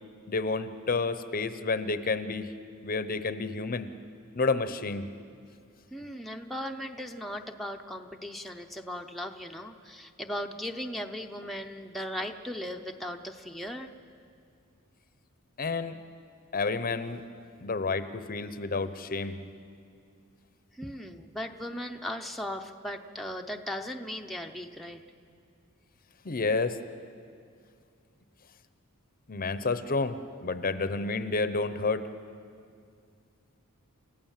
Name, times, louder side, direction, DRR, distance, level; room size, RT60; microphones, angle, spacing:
voice 1, 0.3-2.5 2.8-3.9 4.3-5.0 15.6-16.0 16.5-17.2 17.6-19.4 26.2-26.8 29.3-32.1, left 3 dB, 40° left, 11 dB, 0.8 m, -30 dB
voice 2, 5.9-13.9 20.7-25.0, equal, ahead, 2 dB, 0.7 m, -37 dB
29.0 x 15.5 x 7.4 m, 2.3 s
head